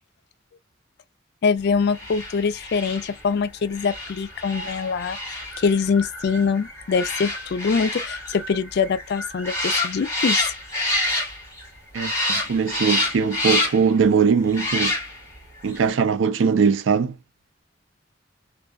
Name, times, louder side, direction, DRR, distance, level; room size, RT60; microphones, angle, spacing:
voice 1, 1.4-5.2 5.6-10.4, left 5 dB, 60° left, 0.4 m, -23 dB
sound 1, 1.9-11.7 11.9-14.0 14.5-15.4 15.7-15.8, left 1 dB, 15° left, 1.3 m, -28 dB
voice 2, 12.5-15.0 15.6-17.2, right 6 dB, 85° right, 0.4 m, -20 dB
2.6 x 2.3 x 2.2 m
head